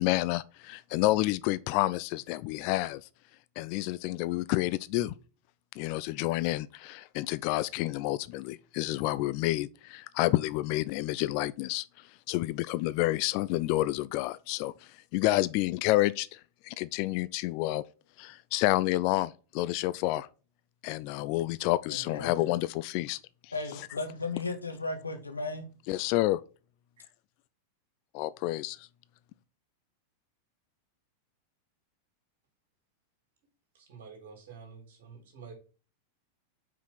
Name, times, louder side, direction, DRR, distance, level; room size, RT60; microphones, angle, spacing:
voice 1, 0.0-3.0 3.6-5.1 5.8-11.8 12.3-14.7 15.1-17.8 18.2-20.3 20.8-23.2 25.9-26.4 28.2-28.9, left 17 dB, 45° left, 0.4 m, -29 dB
voice 2, 21.9-22.3 23.5-25.7, left 3 dB, 80° left, 1.3 m, -35 dB
voice 3, 33.7-35.5, right 5 dB, 55° right, 3.1 m, -49 dB
5.6 x 4.8 x 5.8 m
figure-of-eight pair, 90°, 0 cm